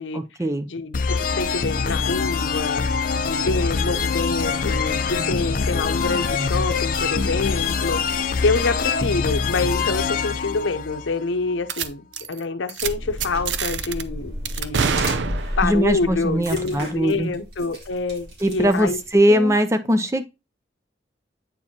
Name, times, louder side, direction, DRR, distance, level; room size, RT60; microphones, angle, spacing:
voice 1, 0.1-0.7 15.6-17.3 18.4-20.2, equal, 15° right, 0.5 m, -20 dB
voice 2, 0.7-2.8 3.2-14.9 15.6-19.0 19.3-19.6, left 3 dB, 90° left, 0.7 m, -26 dB
sound 1, 0.9-11.5, left 5 dB, 45° left, 0.5 m, -24 dB
sound 2, 11.7-11.9 12.1-12.4 12.7-12.9 13.2-14.0 14.5-15.8, right 6 dB, 80° right, 0.6 m, -25 dB
sound 3, 12.8-19.1, equal, 60° right, 2.6 m, -33 dB
8.4 x 4.5 x 2.9 m
head